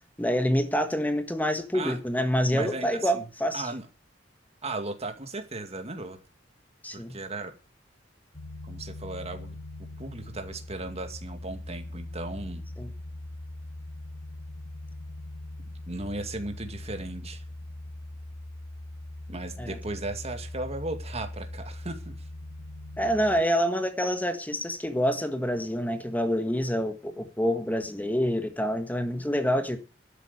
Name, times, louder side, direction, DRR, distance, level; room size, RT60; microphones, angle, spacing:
voice 1, 0.2-3.7 6.8-7.1 12.8-12.9 19.6-19.7 23.0-29.8, equal, 10° left, 1.5 m, -27 dB
voice 2, 2.5-3.3 3.5-3.9 4.6-6.2 6.9-7.5 8.6-12.6 15.9-17.4 19.3-22.1, right 2 dB, 35° right, 2.2 m, -36 dB
sound 1, 8.3-23.4, left 1 dB, 70° left, 1.9 m, -41 dB
12.5 x 9.2 x 6.9 m
head